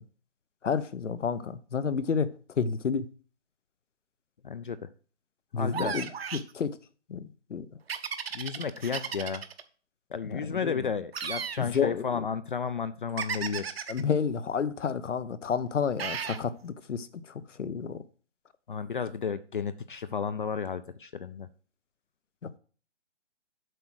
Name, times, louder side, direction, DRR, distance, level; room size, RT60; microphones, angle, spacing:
voice 1, 0.6-3.1 5.5-6.1 6.3-6.8 7.1-7.7 10.3-10.8 11.6-12.2 13.9-17.1 17.6-18.0, left 6 dB, 85° left, 0.9 m, -30 dB
voice 2, 4.4-4.9 5.5-6.0 8.3-9.4 10.1-13.7 18.7-21.5, left 6 dB, 45° left, 0.5 m, -33 dB
sound 1, 5.7-6.5 7.9-9.6 11.1-11.6 13.2-14.0 16.0-16.4, right 7 dB, 55° right, 0.9 m, -34 dB
7.8 x 4.8 x 6.1 m
hypercardioid pair, 160°, 35 cm